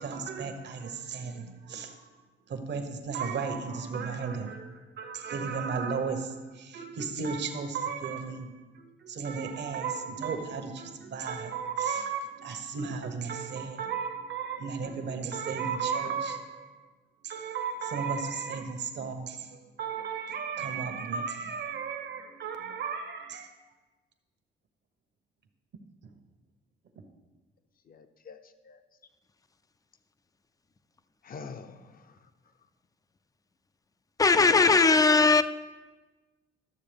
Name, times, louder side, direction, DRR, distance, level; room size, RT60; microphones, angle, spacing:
voice 1, 0.0-2.1 2.5-16.9 17.2-23.5, right 5 dB, 60° right, 1.1 m, -34 dB
voice 2, 27.9-28.8 31.2-32.3, left 5 dB, 45° left, 0.7 m, -46 dB
voice 3, 34.2-35.4, left 4 dB, 20° left, 0.4 m, -19 dB
12.5 x 7.0 x 3.4 m
cardioid pair, 90°, 20 cm